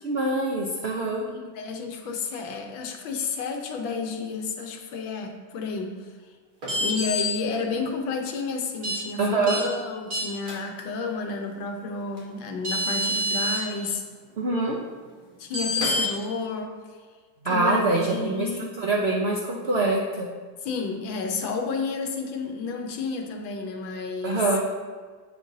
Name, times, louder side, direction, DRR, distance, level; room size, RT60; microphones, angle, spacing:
voice 1, 0.0-1.2 9.2-9.6 14.4-14.8 17.4-20.3 24.2-24.6, right 2 dB, 75° right, -2 dB, 0.5 m, -24 dB
voice 2, 1.3-6.0 6.8-14.0 15.4-16.7 17.5-18.7 20.6-24.4, left 4 dB, 85° left, 4 dB, 1.6 m, -31 dB
sound 1, 6.6-7.2 8.8-9.0 9.5-9.6 10.1-10.5 12.2-12.3 12.6-13.6 15.5-16.1, equal, 55° right, 2.6 m, -26 dB
7.9 x 6.8 x 2.7 m, 1.5 s
omnidirectional pair, 2.0 m